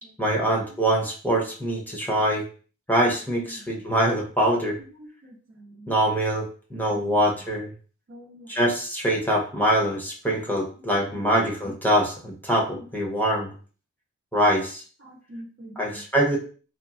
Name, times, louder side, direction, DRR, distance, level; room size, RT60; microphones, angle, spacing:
voice 1, 0.2-2.5 2.9-4.8 5.9-7.7 8.5-13.5 14.3-14.8 15.8-16.4, right 1 dB, 5° left, -3 dB, 0.8 m, -24 dB
voice 2, 3.4-3.9 4.8-5.9 6.9-7.1 7.3-7.4 8.1-8.5 11.0-11.4 12.7-12.9 14.5-14.7 15.0-16.1, equal, 45° right, -1 dB, 0.8 m, -45 dB
2.9 x 2.3 x 2.5 m, 0.40 s
wide cardioid pair, 45°, 31 cm